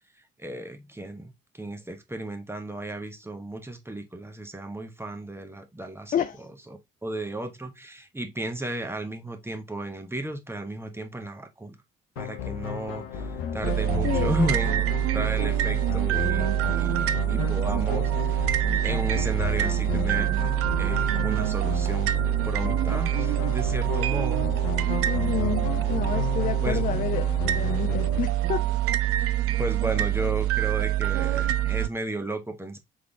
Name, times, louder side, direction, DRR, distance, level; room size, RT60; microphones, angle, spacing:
voice 1, 0.4-1.3 1.6-6.1 6.7-11.8 12.2-14.8 15.1-20.4 20.8-22.1 22.4-24.5 26.6-26.9 29.6-32.8, right 1 dB, 10° right, 0.9 m, -34 dB
voice 2, 6.1-6.5 14.0-14.3 25.1-28.7, left 9 dB, 30° left, 0.3 m, -30 dB
sound 1, 12.2-28.2, left 7 dB, 75° left, 0.7 m, -33 dB
sound 2, 13.6-31.9, right 14 dB, 50° right, 0.5 m, -25 dB
3.6 x 3.6 x 3.3 m
figure-of-eight pair, 40°, 29 cm